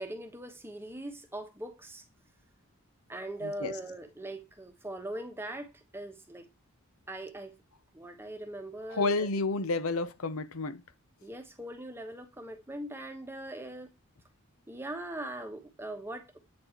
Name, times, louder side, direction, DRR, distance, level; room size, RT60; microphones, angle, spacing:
voice 1, 0.0-2.0 3.1-6.4 7.1-7.5 7.9-9.3 11.2-13.9 14.7-16.4, right 1 dB, 10° right, 1.0 m, -41 dB
voice 2, 3.4-3.8 8.9-10.8, left 3 dB, 70° left, 0.8 m, -30 dB
8.6 x 4.2 x 4.4 m
head